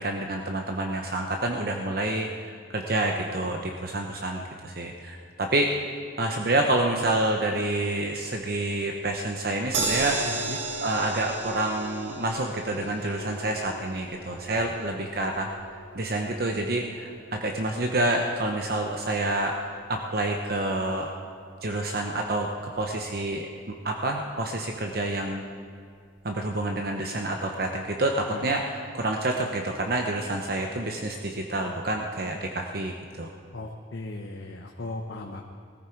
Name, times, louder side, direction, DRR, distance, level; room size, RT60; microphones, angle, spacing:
voice 1, 0.0-5.9 6.2-10.5 10.8-15.5 15.9-21.1 21.6-22.5 22.8-23.5 23.8-25.4 26.2-33.3, right 2 dB, 50° right, 2 dB, 0.9 m, -28 dB
sound 1, 9.7-22.0 22.4-22.5 22.7-22.8, right 3 dB, 80° right, 1.8 m, -37 dB
voice 2, 10.2-10.6 28.3-28.6 33.5-35.4, left 2 dB, 80° left, 2 dB, 1.0 m, -37 dB
20.0 x 14.5 x 4.6 m, 2.1 s
head